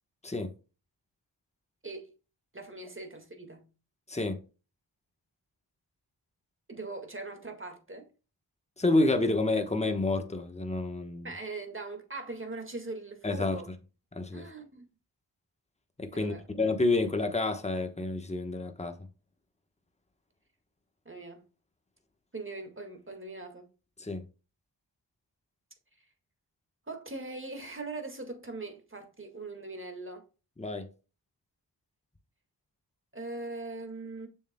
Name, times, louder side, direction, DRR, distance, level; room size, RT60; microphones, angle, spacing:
voice 1, 2.5-3.7 6.7-8.1 11.2-13.7 14.3-14.8 16.1-16.5 21.1-21.4 22.3-23.7 26.9-30.2 33.1-34.3, right 3 dB, 25° right, 1.8 m, -41 dB
voice 2, 8.8-11.3 13.2-13.6 14.1-14.4 16.0-18.9 24.0-24.2 30.6-30.9, left 2 dB, 15° left, 1.1 m, -29 dB
6.9 x 6.5 x 2.2 m
cardioid pair, 45°, 45 cm